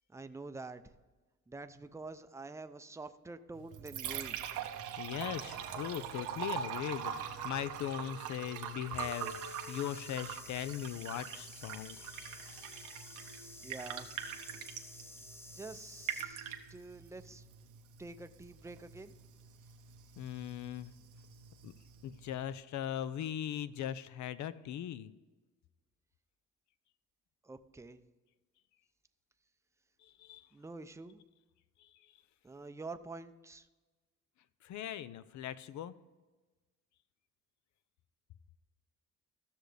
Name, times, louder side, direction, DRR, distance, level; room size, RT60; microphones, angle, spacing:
voice 1, 0.1-0.9 1.5-4.4 13.6-14.1 15.5-17.4 18.0-19.1 27.4-28.0 30.5-31.2 32.4-33.7, right 3 dB, 10° right, 10 dB, 0.5 m, -47 dB
Liquid, 3.5-22.5, right 9 dB, 90° right, 1.0 m, -43 dB
voice 2, 5.0-12.4 20.2-20.9 21.6-21.7 22.0-25.1 30.0-30.5 31.8-32.1 34.6-36.0, left 10 dB, 70° left, 15 dB, 0.6 m, -40 dB
sound 1, 9.0-16.3, left 1 dB, 10° left, 0.9 m, -52 dB
14.5 x 6.4 x 3.4 m, 1.2 s
cardioid pair, 90°, 30 cm